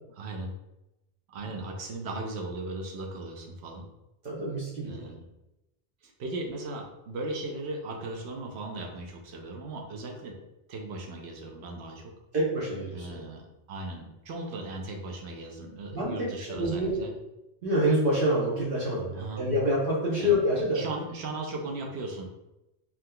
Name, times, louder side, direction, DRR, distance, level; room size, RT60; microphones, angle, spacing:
voice 1, 0.1-0.5 1.3-3.9 4.8-5.2 6.0-10.3 10.7-12.1 12.9-17.1 19.1-19.5 20.2-20.3 20.7-22.2, right 2 dB, 85° right, 2 dB, 0.8 m, -37 dB
voice 2, 4.2-5.1 12.3-13.2 15.9-17.0 17.6-20.8, equal, 60° right, -6 dB, 0.9 m, -27 dB
3.6 x 2.8 x 2.2 m, 0.93 s
omnidirectional pair, 1.1 m